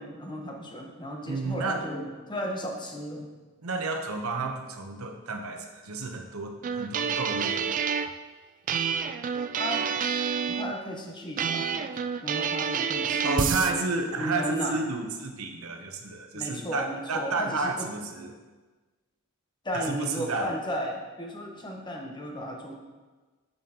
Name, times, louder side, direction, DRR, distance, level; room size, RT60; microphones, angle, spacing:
voice 1, 0.0-3.3 9.5-9.9 10.5-11.6 12.2-13.7 14.2-14.8 16.3-17.9 19.6-22.7, equal, 20° left, 1 dB, 1.0 m, -34 dB
voice 2, 1.3-1.9 3.6-7.6 13.2-18.3 19.7-20.5, right 3 dB, 80° right, 4 dB, 0.8 m, -31 dB
sound 1, 6.6-8.1 8.7-10.7 11.4-13.7, right 7 dB, 40° right, 0.3 m, -28 dB
9.0 x 6.9 x 2.9 m, 1.3 s
head